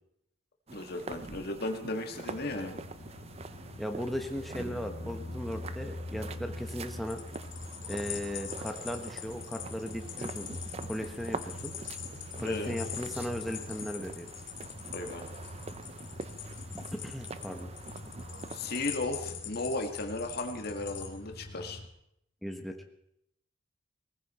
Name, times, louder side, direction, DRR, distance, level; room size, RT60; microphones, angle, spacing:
voice 1, 0.7-2.9 12.4-12.8 14.9-15.3 18.5-21.8, left 2 dB, 50° left, 4 dB, 1.8 m, -35 dB
sound 1, 0.7-18.9, right 3 dB, 30° right, 0.6 m, -45 dB
sound 2, 2.2-21.9, left 1 dB, 85° left, 2.2 m, -45 dB
voice 2, 3.8-7.2 7.9-10.5 10.9-11.7 12.4-14.3 17.0-17.7 22.4-22.7, equal, ahead, 3 dB, 1.2 m, -37 dB
sound 3, 7.1-21.1, left 11 dB, 65° left, 2.4 m, -43 dB
20.0 x 15.0 x 4.3 m, 0.76 s
head